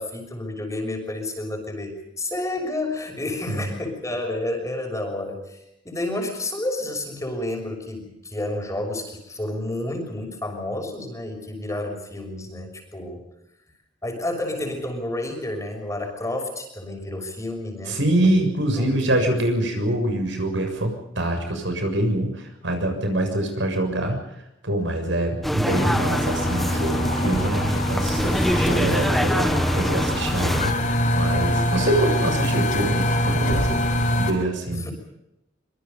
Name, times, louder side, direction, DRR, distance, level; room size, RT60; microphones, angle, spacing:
voice 1, 0.0-5.6 5.8-13.2 14.0-18.4 18.8-19.4 19.7-19.9 34.7-34.9, left 1 dB, 15° left, 4 dB, 6.3 m, -30 dB
voice 2, 17.9-24.2 24.6-30.7 31.2-33.8 34.2-34.8, right 1 dB, 75° right, 5 dB, 7.0 m, -25 dB
sound 1, 25.4-30.7, equal, ahead, 1.1 m, -24 dB
sound 2, 25.7-34.3, left 1 dB, 45° left, 5.8 m, -24 dB
25.5 x 24.5 x 5.4 m, 0.85 s
head